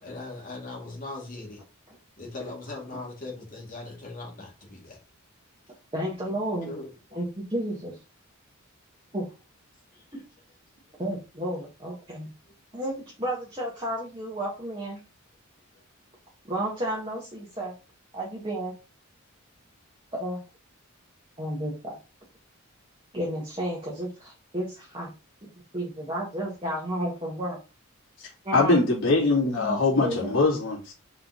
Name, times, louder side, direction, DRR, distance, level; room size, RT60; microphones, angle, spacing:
voice 1, 0.0-1.6 2.2-5.0 6.6-6.9 9.9-10.2 10.9-11.0 15.7-15.8, left 2 dB, 40° left, 2.3 m, -40 dB
voice 2, 5.9-6.7 7.1-8.0 9.1-9.3 11.0-12.3 12.7-15.0 16.5-17.7 18.1-18.7 20.1-20.4 21.4-22.0 23.1-25.1 25.7-27.6 28.4-28.8 29.6-30.3, right 1 dB, 25° right, 1.7 m, -32 dB
voice 3, 28.5-30.9, left 3 dB, 60° left, 3.1 m, -22 dB
5.5 x 4.2 x 4.0 m
head